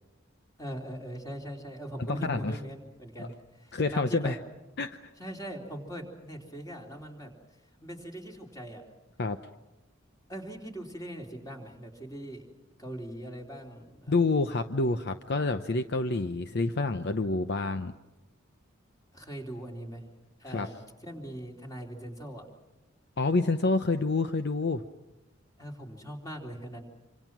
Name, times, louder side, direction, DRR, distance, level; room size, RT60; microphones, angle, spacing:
voice 1, 0.6-3.3 3.6-4.4 5.2-7.3 7.8-8.8 10.3-12.5 12.8-14.1 19.1-20.0 20.4-22.4 25.6-26.8, equal, 20° left, 1 dB, 3.7 m, -40 dB
voice 2, 2.1-2.6 3.2-3.3 3.7-4.4 4.8-5.0 9.2-9.4 14.1-17.9 20.5-20.7 23.2-24.8, left 3 dB, 55° left, 9 dB, 0.8 m, -28 dB
27.0 x 26.0 x 6.1 m, 1.1 s
head